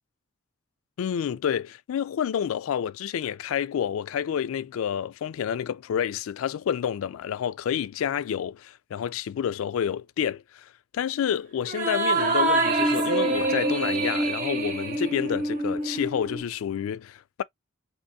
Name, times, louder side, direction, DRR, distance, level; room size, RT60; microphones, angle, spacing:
voice 1, 1.0-17.4, left 8 dB, 90° left, 0.3 m, -29 dB
sound 1, 11.7-16.4, right 2 dB, 40° right, 0.8 m, -25 dB
3.4 x 2.9 x 2.7 m
head